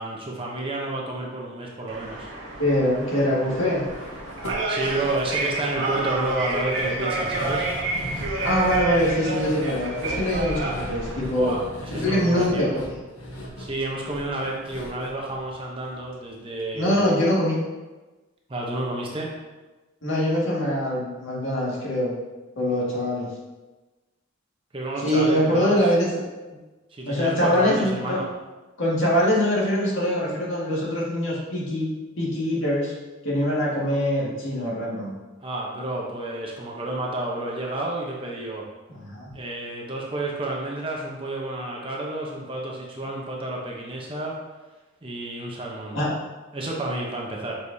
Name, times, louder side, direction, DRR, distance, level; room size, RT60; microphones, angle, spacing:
voice 1, 0.0-2.3 4.7-7.7 11.3-12.7 13.6-17.0 18.5-19.3 24.7-25.9 26.9-28.2 35.4-38.7 39.3-44.4 45.0-46.0 46.5-47.5, right 2 dB, 25° right, -2 dB, 0.8 m, -30 dB
sound 1, 1.9-11.3, right 2 dB, 65° right, 1.3 m, -30 dB
voice 2, 2.6-3.8 8.4-11.5 11.9-12.9 16.7-17.6 20.0-22.1 22.6-23.3 25.0-26.1 27.1-28.2 28.8-31.9 32.2-32.9 33.2-35.1 38.9-39.3 45.9-46.1, equal, 65° left, -6 dB, 2.0 m, -23 dB
sound 2, 3.9-16.1 16.4-16.5 16.9-17.0, equal, 90° left, 1.2 m, -38 dB
7.4 x 4.8 x 2.8 m, 1.2 s
head